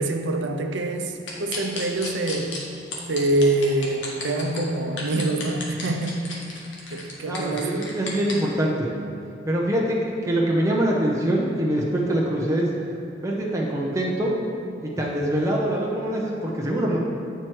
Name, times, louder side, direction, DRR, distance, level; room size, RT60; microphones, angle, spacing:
voice 1, 0.0-2.5 3.1-6.3 6.9-7.9, right 2 dB, 75° right, 4 dB, 0.6 m, -25 dB
sound 1, 1.3-2.6 2.9-4.6 5.0-8.3, left 3 dB, 80° left, 1.3 m, -33 dB
voice 2, 7.3-8.7 9.5-12.7 13.2-14.3 14.8-17.0, right 1 dB, 15° right, -3 dB, 0.7 m, -24 dB
9.1 x 4.5 x 4.6 m, 2.6 s
head